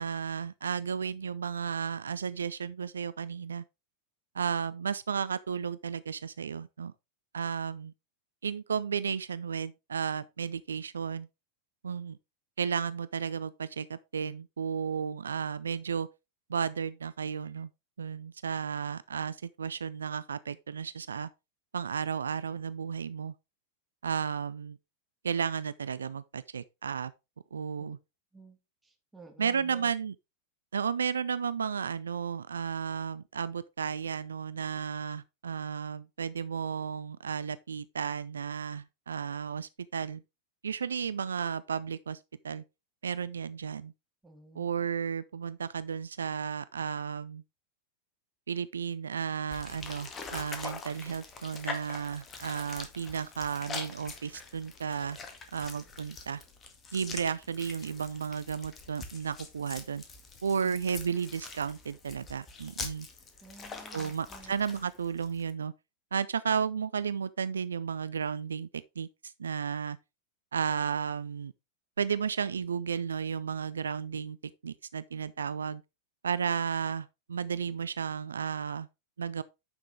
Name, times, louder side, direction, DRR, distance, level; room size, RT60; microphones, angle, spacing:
voice 1, 0.0-3.6 4.3-6.9 7.3-7.9 8.4-11.3 11.8-12.2 12.6-16.1 16.5-17.7 18.0-21.3 21.7-23.3 24.0-24.8 25.2-27.1 27.5-28.0 29.4-30.1 30.7-40.2 40.6-42.2 42.4-42.6 43.0-43.9 44.6-47.4 48.5-55.2 55.5-56.4 56.9-60.0 60.4-63.1 63.9-65.7 66.1-68.7 69.0-70.0 70.5-71.5 72.0-74.4 74.6-75.8 76.2-78.9 79.2-79.4, right 6 dB, 70° right, 0.3 m, -33 dB
voice 2, 28.3-29.9 44.2-44.6 63.4-64.6, right 3 dB, 10° right, 2.2 m, -53 dB
sound 1, 49.5-65.5, left 4 dB, 25° left, 1.8 m, -44 dB
9.7 x 5.9 x 3.5 m
figure-of-eight pair, 90°, 0 cm